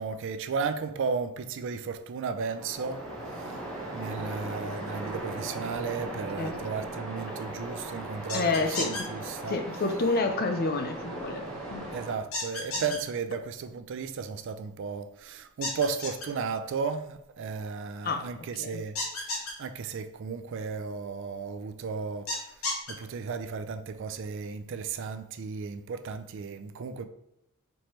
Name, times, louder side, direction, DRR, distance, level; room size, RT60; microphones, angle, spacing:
voice 1, 0.0-3.1 3.3-3.6 3.9-9.6 11.9-22.3 22.9-27.1, right 5 dB, 55° right, 0.4 m, -34 dB
Waves surf, 2.3-12.1, right 1 dB, 5° left, 0.9 m, -38 dB
sound 1, 8.3-9.0 12.3-13.0 15.6-16.3 19.0-19.5 22.3-22.9, left 2 dB, 70° left, 1.5 m, -31 dB
voice 2, 8.3-9.1 9.5-11.5 11.7-11.9 12.8-12.9 18.0-18.3 18.6-18.8, left 3 dB, 45° left, 0.5 m, -29 dB
4.3 x 3.2 x 3.0 m
head